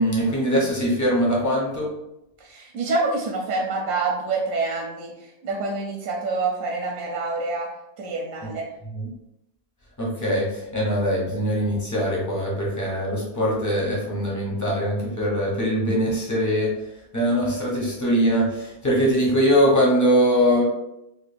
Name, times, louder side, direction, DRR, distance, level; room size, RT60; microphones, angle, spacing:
voice 1, 0.0-1.9 8.9-9.1 10.0-16.7 17.1-20.6, equal, 20° left, -4 dB, 0.5 m, -22 dB
voice 2, 2.4-5.1 5.4-7.7 8.0-8.6, right 3 dB, 70° right, -1 dB, 1.0 m, -26 dB
2.9 x 2.4 x 3.3 m, 0.86 s
omnidirectional pair, 1.6 m